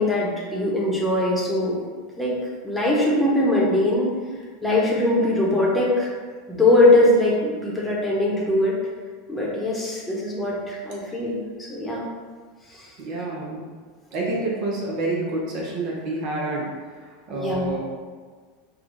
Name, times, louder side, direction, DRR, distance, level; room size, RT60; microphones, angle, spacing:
voice 1, 0.0-1.8 2.2-2.3 2.6-4.1 4.6-6.1 6.5-8.7 9.3-11.4 11.7-12.0 12.7-12.9 17.3-17.8, left 1 dB, 10° left, -4 dB, 1.0 m, -21 dB
voice 2, 13.0-13.6 14.1-16.7 17.0-17.8, right 2 dB, 50° right, -3 dB, 0.8 m, -28 dB
5.9 x 2.4 x 2.6 m, 1.5 s
figure-of-eight pair, 80°, 0 cm